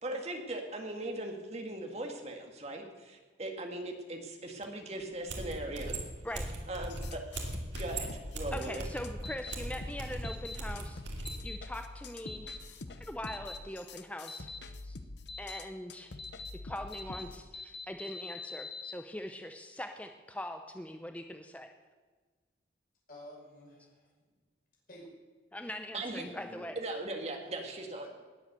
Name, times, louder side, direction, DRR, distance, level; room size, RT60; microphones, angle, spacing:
voice 1, 0.0-6.0 6.7-7.2 7.8-8.8 25.9-26.2 26.8-28.1, right 2 dB, 35° right, 3 dB, 1.9 m, -39 dB
sound 1, 5.3-11.4, right 1 dB, 75° right, 2.5 m, -39 dB
sound 2, 6.9-17.4, left 2 dB, 70° left, 0.9 m, -47 dB
voice 2, 8.5-12.5 13.1-14.5 14.8-15.0 15.4-16.1 16.6-21.7 25.5-26.7, left 1 dB, 5° left, 6 dB, 0.6 m, -42 dB
sound 3, 9.2-9.5 10.2-10.6 11.2-11.6 12.3-12.6 13.3-13.6 14.3-14.6 15.3-15.6 16.2-16.5 16.9-17.2 17.5-18.9, left 3 dB, 30° left, 1.0 m, -43 dB
voice 3, 23.1-24.1 24.9-25.1 26.2-26.7 27.4-27.5, equal, 50° left, -3 dB, 5.6 m, -50 dB
19.5 x 7.9 x 6.8 m, 1.4 s
head